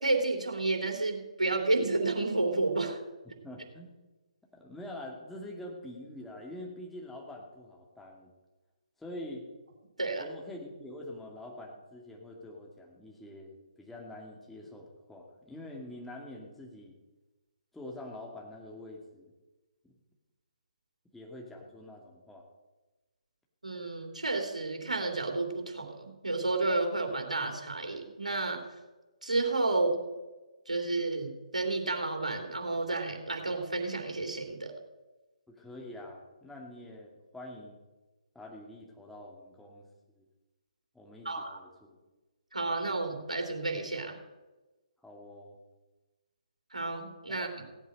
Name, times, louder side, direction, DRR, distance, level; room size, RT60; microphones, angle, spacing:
voice 1, 0.0-3.0 10.0-10.2 23.6-28.6 29.2-30.0 30.7-34.7 41.2-41.6 42.5-44.2 46.7-47.5, right 2 dB, 80° right, 3 dB, 3.0 m, -31 dB
voice 2, 3.3-3.9 4.5-8.3 9.0-9.5 10.2-17.0 17.7-19.3 19.8-19.9 21.1-22.4 35.5-37.8 38.3-39.9 40.1-40.3 40.9-42.0 45.0-45.6 47.3-47.8, left 1 dB, 5° left, -2 dB, 2.3 m, -45 dB
16.5 x 8.2 x 6.5 m, 1.1 s
figure-of-eight pair, 135°, 4 cm